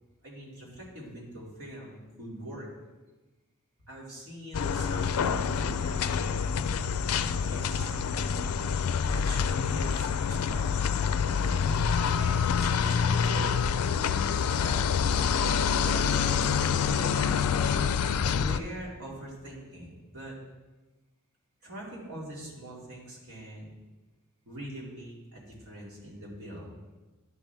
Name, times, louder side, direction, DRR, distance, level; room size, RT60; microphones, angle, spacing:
voice 1, 0.2-2.7 3.9-6.1 7.1-8.0 9.0-10.7 12.2-13.5 14.4-14.9 15.8-17.4 18.2-20.3 21.6-23.8 24.4-26.7, equal, 75° right, -5 dB, 2.6 m, -42 dB
sound 1, 4.5-18.6, left 6 dB, 80° left, 0.4 m, -27 dB
11.0 x 5.9 x 3.5 m, 1.2 s
head